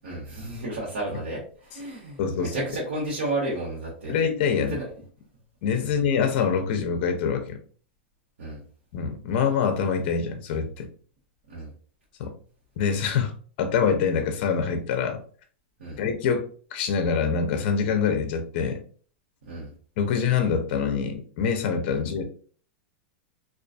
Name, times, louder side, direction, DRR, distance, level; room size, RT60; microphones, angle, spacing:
voice 1, 0.0-4.2 4.5-4.9 8.4-8.6 11.5-11.7 15.8-16.0 19.5-19.7 21.9-22.0, right 2 dB, 85° right, -5 dB, 1.0 m, -32 dB
voice 2, 2.2-2.5 4.1-4.8 5.6-7.6 8.9-10.9 12.2-12.3 12.8-13.3 13.6-15.2 16.0-16.4 16.7-18.8 20.0-22.2, left 6 dB, 50° left, 6 dB, 0.5 m, -25 dB
2.4 x 2.3 x 2.4 m, 0.43 s
supercardioid pair, 150°, 6 cm